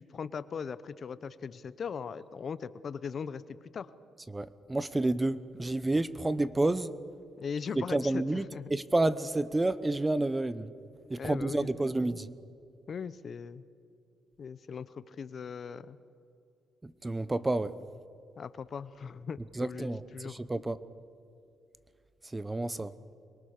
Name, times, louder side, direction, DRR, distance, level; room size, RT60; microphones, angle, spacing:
voice 1, 0.0-3.9 7.4-8.7 11.2-11.7 12.9-13.6 14.4-16.0 18.4-20.4, left 6 dB, 50° left, 15 dB, 0.9 m, -39 dB
voice 2, 4.3-6.9 7.8-10.7 11.1-12.3 16.8-17.8 19.6-20.8 22.2-22.9, right 2 dB, 15° right, 15 dB, 0.9 m, -30 dB
25.0 x 22.5 x 6.7 m, 2.4 s
cardioid pair, 90°, 0 cm